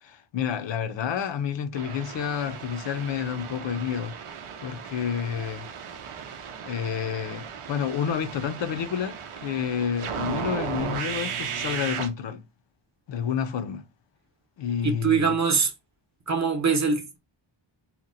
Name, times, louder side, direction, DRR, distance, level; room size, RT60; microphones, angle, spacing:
voice 1, 0.0-4.1 4.6-5.7 6.6-12.4 13.1-13.8 14.6-15.4, left 8 dB, 65° left, 0.5 m, -29 dB
sound 1, 1.7-12.1, right 7 dB, 90° right, 0.6 m, -36 dB
voice 2, 14.8-15.7 16.3-17.2, right 5 dB, 35° right, 0.7 m, -23 dB
2.9 x 2.1 x 3.8 m
wide cardioid pair, 115°, 49 cm